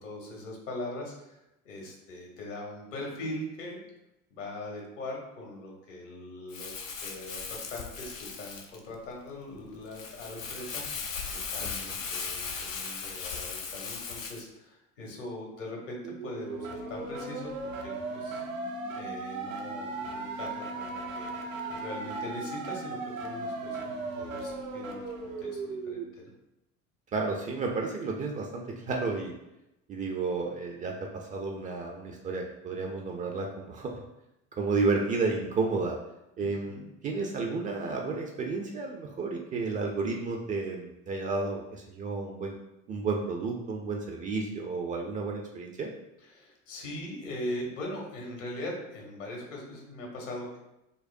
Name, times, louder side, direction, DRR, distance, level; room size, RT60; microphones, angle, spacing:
voice 1, 0.0-3.8 4.3-10.8 11.3-17.5 17.8-18.4 19.0-21.3 21.7-26.3 36.4-36.9 46.2-50.6, left 1 dB, 65° left, -1 dB, 1.1 m, -41 dB
Crumpling crinkling, 6.5-14.4, left 5 dB, 85° left, 0.5 m, -38 dB
sound 1, 16.0-26.0, right 3 dB, 85° right, 0.5 m, -37 dB
voice 2, 27.1-29.3 29.9-34.0 34.6-36.0 36.4-42.6 42.9-45.9, right 3 dB, 20° right, 1 dB, 0.3 m, -32 dB
5.2 x 2.0 x 2.5 m, 0.88 s
figure-of-eight pair, 65°, 39 cm